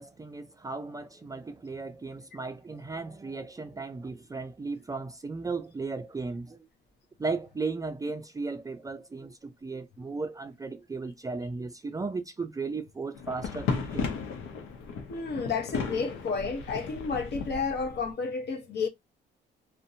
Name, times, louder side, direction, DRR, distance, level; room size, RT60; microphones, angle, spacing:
voice 1, 0.0-6.6 7.2-14.1, right 4 dB, 15° right, 0.3 m, -36 dB
sound 1, 13.1-18.1, left 5 dB, 90° left, 0.7 m, -35 dB
voice 2, 15.1-18.9, left 4 dB, 55° left, 0.7 m, -31 dB
2.6 x 2.1 x 2.6 m
cardioid pair, 90°, 20 cm